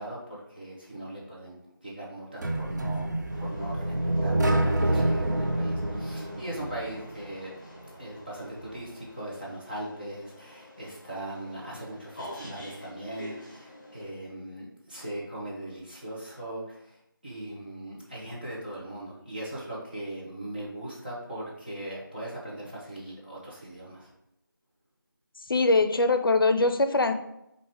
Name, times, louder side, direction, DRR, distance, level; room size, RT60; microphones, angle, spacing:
voice 1, 0.0-3.9 4.2-7.5 8.0-17.0 17.2-24.1, right 1 dB, 25° right, -7 dB, 0.7 m, -39 dB
sound 1, 2.4-7.3, right 1 dB, 55° right, 0.4 m, -27 dB
sound 2, 3.3-14.1, equal, 20° left, 1.1 m, -48 dB
voice 2, 25.5-27.1, left 3 dB, 75° left, 8 dB, 0.5 m, -22 dB
4.5 x 2.5 x 3.4 m, 0.83 s
figure-of-eight pair, 170°, 12 cm